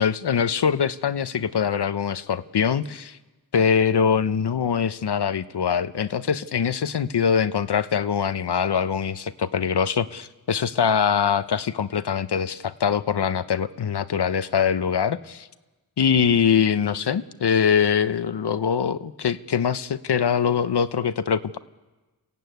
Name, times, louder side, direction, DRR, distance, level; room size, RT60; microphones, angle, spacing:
voice 1, 0.0-3.2 3.5-15.5 16.0-21.6, left 7 dB, 85° left, 13 dB, 0.9 m, -23 dB
29.0 x 15.5 x 9.3 m, 1.2 s
wide cardioid pair, 70°, 40 cm